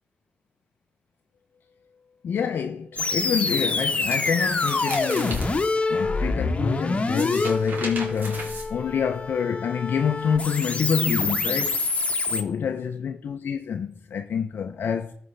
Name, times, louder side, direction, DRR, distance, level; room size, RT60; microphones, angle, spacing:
voice 1, 2.2-5.6 5.9-11.8 12.3-15.1, left 7 dB, 75° left, 0.5 m, -27 dB
sound 1, 3.0-12.4, left 3 dB, 35° left, 1.1 m, -26 dB
sound 2, 4.0-5.5 7.0-9.2, right 2 dB, 60° right, 2.3 m, -37 dB
13.0 x 5.0 x 3.3 m
cardioid pair, 65°, 4 cm